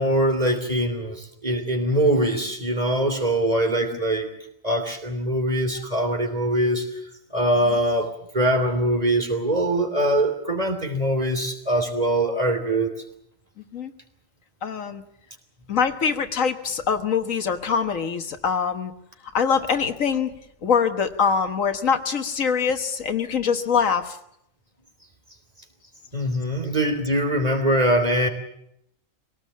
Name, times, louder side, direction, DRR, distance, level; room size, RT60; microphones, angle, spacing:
voice 1, 0.0-4.3 4.6-6.9 7.3-12.9 26.1-28.3, right 1 dB, 30° right, 3 dB, 3.4 m, -23 dB
voice 2, 13.6-13.9 14.6-15.0 15.7-18.9 19.3-20.3 20.6-24.2, left 6 dB, 80° left, 8 dB, 1.7 m, -23 dB
23.0 x 18.0 x 8.5 m, 0.75 s
omnidirectional pair, 1.4 m